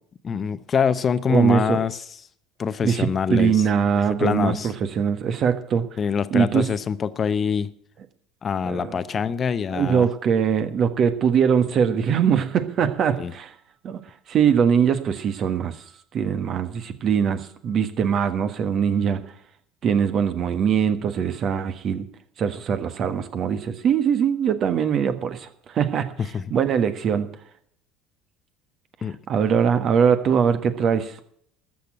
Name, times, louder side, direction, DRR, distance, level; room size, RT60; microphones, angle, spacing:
voice 1, 0.2-2.0 2.6-3.6 4.2-4.7 6.0-7.7 8.4-10.1 13.2-13.3 26.3-26.4 29.0-29.2, left 6 dB, 35° left, 14 dB, 0.8 m, -24 dB
voice 2, 1.3-1.8 2.8-5.8 6.3-6.7 8.6-9.0 9.7-13.5 13.8-14.0 14.3-15.8 16.1-19.2 19.8-22.1 22.4-25.5 25.7-26.1 26.5-27.3 29.3-31.1, right 7 dB, 45° right, 10 dB, 1.4 m, -22 dB
13.5 x 6.5 x 8.9 m, 0.65 s
hypercardioid pair, 70°, 0 cm